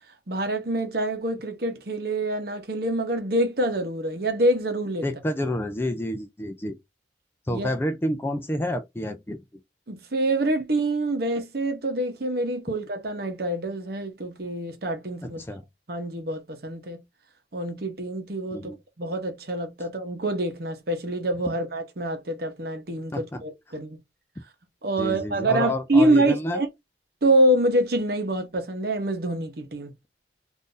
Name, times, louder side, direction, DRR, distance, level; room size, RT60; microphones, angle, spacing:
voice 1, 0.3-5.0 7.5-7.7 9.9-15.4 15.9-17.0 17.5-18.7 19.0-24.0 24.8-26.7 27.2-29.9, right 1 dB, 55° right, 0.9 m, -26 dB
voice 2, 5.0-6.8 7.5-9.4 15.2-15.6 18.5-18.8 23.1-23.4 25.0-26.6, left 1 dB, 10° left, 0.3 m, -29 dB
2.6 x 2.5 x 3.7 m
head